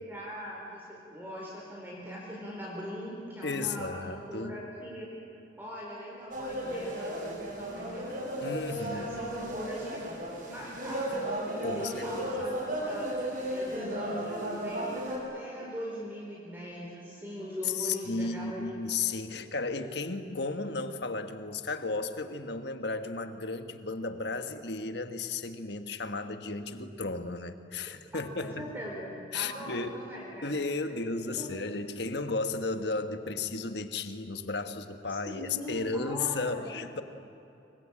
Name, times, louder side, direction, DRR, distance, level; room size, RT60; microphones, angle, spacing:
voice 1, 0.0-5.1 5.6-7.2 7.6-8.1 8.8-10.0 10.4-11.2 11.7-13.1 13.5-18.7 28.1-30.6 31.4-31.5 35.3-36.7, equal, 10° right, -4 dB, 4.3 m, -41 dB
voice 2, 3.4-4.6 8.4-9.3 11.6-12.2 17.6-28.7 29.3-30.0 30.4-37.0, left 3 dB, 60° left, 8 dB, 1.5 m, -34 dB
sound 1, 6.3-15.2, right 1 dB, 45° right, 7.5 m, -35 dB
26.5 x 23.5 x 8.8 m, 2.7 s
head